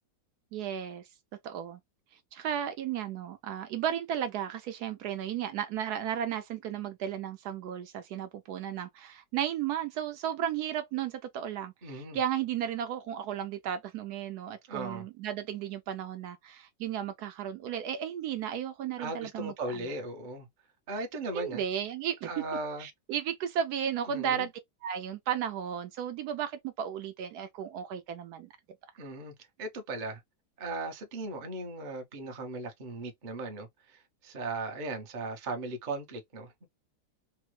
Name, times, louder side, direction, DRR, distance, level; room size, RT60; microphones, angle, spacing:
voice 1, 0.5-1.0 1.4-1.8 2.3-19.8 21.3-22.3 22.8-24.5 24.8-28.5, right 9 dB, 75° right, 1.0 m, -34 dB
voice 2, 11.8-12.2 14.7-15.0 19.0-20.5 20.9-21.6 22.2-22.9 24.1-24.5 29.0-29.3 29.6-30.2 30.6-36.7, right 2 dB, 40° right, 0.7 m, -37 dB
3.4 x 2.0 x 3.1 m
omnidirectional pair, 1.8 m